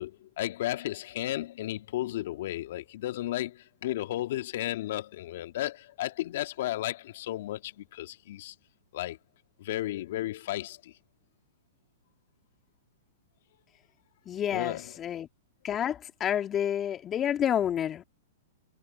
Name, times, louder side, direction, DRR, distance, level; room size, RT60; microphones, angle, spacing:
voice 1, 0.0-8.5 8.9-9.2 9.6-10.9 14.5-14.8, left 14 dB, 60° left, 1.8 m, -34 dB
voice 2, 14.3-15.3 15.6-18.0, left 10 dB, 25° left, 2.2 m, -29 dB
hypercardioid pair, 115°, 0 cm